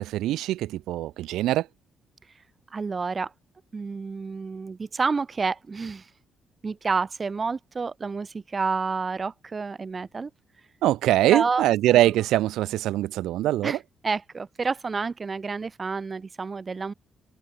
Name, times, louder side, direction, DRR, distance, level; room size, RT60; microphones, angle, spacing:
voice 1, 0.0-1.6 10.8-13.7, right 14 dB, 85° right, 0.4 m, -23 dB
voice 2, 2.7-3.3 3.7-6.1 6.6-10.3 11.2-12.1 13.6-16.9, right 4 dB, 35° right, 1.2 m, -29 dB
open air
cardioid pair, 90°, 0 cm